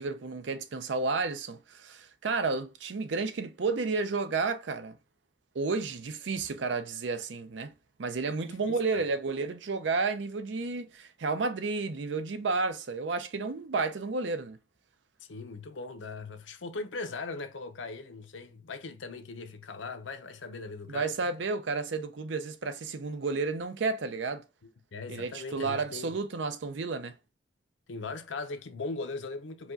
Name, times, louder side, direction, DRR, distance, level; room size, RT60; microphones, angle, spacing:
voice 1, 0.0-5.0 5.5-7.7 8.0-14.6 20.9-24.4 25.1-27.2, right 4 dB, 75° right, 0.5 m, -31 dB
voice 2, 8.4-9.1 15.2-21.1 24.9-26.1 27.9-29.7, left 3 dB, 85° left, 0.6 m, -39 dB
4.8 x 2.2 x 3.8 m
head